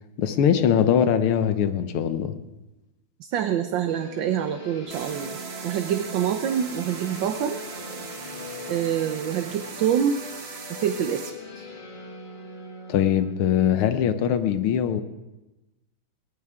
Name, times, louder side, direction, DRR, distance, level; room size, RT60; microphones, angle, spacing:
voice 1, 0.2-2.4 12.9-15.0, left 9 dB, 90° left, 10 dB, 1.9 m, -22 dB
voice 2, 3.2-5.4 5.6-7.6 8.7-10.2 10.7-11.7, right 9 dB, 70° right, 7 dB, 1.5 m, -26 dB
sound 1, 3.9-13.3, left 3 dB, 30° left, 1.3 m, -42 dB
sound 2, 4.9-11.3, right 4 dB, 35° right, 1.2 m, -38 dB
19.5 x 18.5 x 3.7 m, 1.0 s
omnidirectional pair, 2.3 m